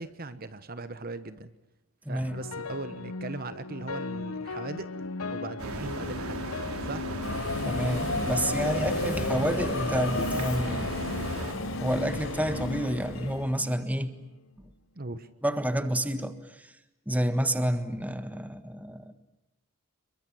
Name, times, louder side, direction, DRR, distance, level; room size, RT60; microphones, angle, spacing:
voice 1, 0.0-1.5 2.1-6.5 6.8-7.2 8.8-9.3 15.0-15.3, right 2 dB, 45° right, 1.1 m, -39 dB
voice 2, 2.0-2.4 7.6-10.9 11.8-14.1 15.4-16.7 17.1-19.1, equal, 5° right, 1.5 m, -29 dB
sound 1, 2.2-14.5, left 4 dB, 80° left, 0.9 m, -38 dB
sound 2, 5.6-11.5, right 1 dB, 90° right, 4.3 m, -36 dB
Subway metro underground, 7.2-13.4, left 2 dB, 65° left, 4.3 m, -32 dB
28.0 x 23.0 x 8.6 m
head